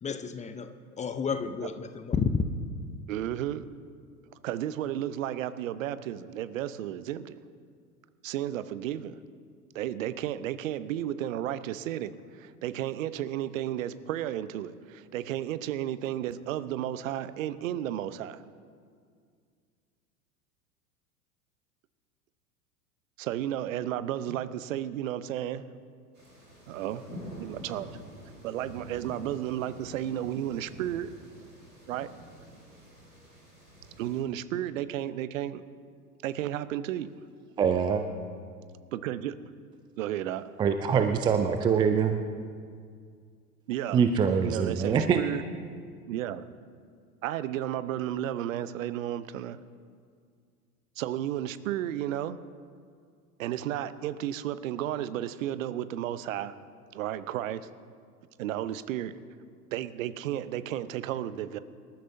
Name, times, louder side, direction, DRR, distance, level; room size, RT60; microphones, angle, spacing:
voice 1, 0.0-0.7 1.0-2.3, left 6 dB, 15° left, 10 dB, 0.7 m, -31 dB
voice 2, 3.1-3.6 4.4-7.4 8.2-9.1 9.7-18.4 23.2-25.7 26.7-27.0 27.4-27.9 28.4-31.1 31.9-32.1 34.0-35.6 36.2-37.1 38.9-39.3 40.0-40.4 43.7-44.0 44.4-45.4 46.1-46.4 47.2-49.6 51.0-52.4 53.4-56.5 56.9-57.7 58.4-59.1 59.7-61.6, right 12 dB, 60° right, 14 dB, 0.9 m, -33 dB
sound 1, 26.1-34.2, right 1 dB, 90° right, 4.6 m, -47 dB
voice 3, 37.6-38.0 40.6-42.2 43.9-45.2, right 7 dB, 10° right, 7 dB, 0.3 m, -24 dB
25.5 x 13.0 x 2.7 m, 2.1 s
figure-of-eight pair, 85°, 46 cm